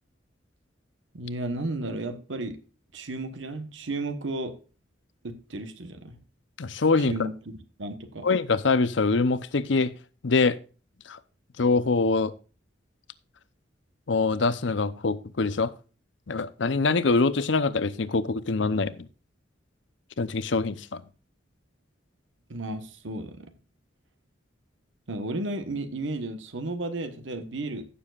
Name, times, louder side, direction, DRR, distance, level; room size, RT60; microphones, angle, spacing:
voice 1, 1.1-2.6 2.9-4.5 5.2-6.2 7.1-7.3 7.8-8.3 22.5-23.5 25.1-27.9, right 2 dB, 75° right, 1.2 m, -33 dB
voice 2, 6.6-7.1 8.2-9.9 10.2-10.6 11.1-11.2 11.6-12.3 14.1-15.7 16.3-19.1 20.2-21.0, left 3 dB, 70° left, 0.7 m, -24 dB
15.5 x 7.0 x 2.4 m
head